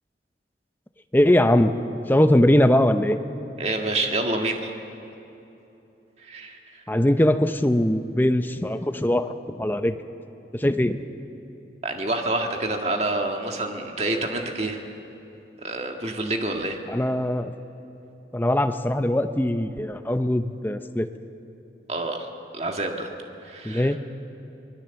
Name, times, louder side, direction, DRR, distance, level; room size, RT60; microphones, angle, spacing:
voice 1, 1.1-1.7 2.1-3.2 6.9-10.0 10.5-11.0 16.9-17.6 18.3-21.1 23.6-24.0, left 1 dB, 10° left, 8 dB, 0.7 m, -21 dB
voice 2, 3.6-4.7 6.2-6.8 11.8-14.8 15.6-16.8 21.9-22.3 22.5-23.1 23.4-24.0, right 2 dB, 35° right, 3 dB, 1.8 m, -27 dB
24.5 x 20.0 x 7.0 m, 3.0 s
head